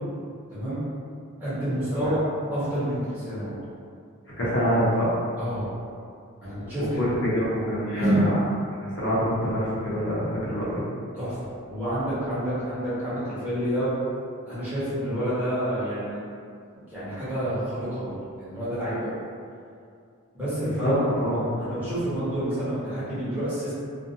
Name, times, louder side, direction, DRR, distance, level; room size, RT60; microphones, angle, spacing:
voice 1, 0.5-0.8 1.4-2.2 2.5-3.6 5.4-5.7 6.4-7.1 7.9-8.3 11.2-11.4 11.7-13.9 14.5-16.2 16.7-19.2 20.3-21.0 21.6-23.7, equal, 10° right, -13 dB, 0.9 m, -28 dB
voice 2, 4.4-5.1 7.0-8.3 8.8-10.8 20.8-21.5, equal, 55° left, -9 dB, 0.7 m, -25 dB
2.6 x 2.2 x 2.6 m, 2.4 s
head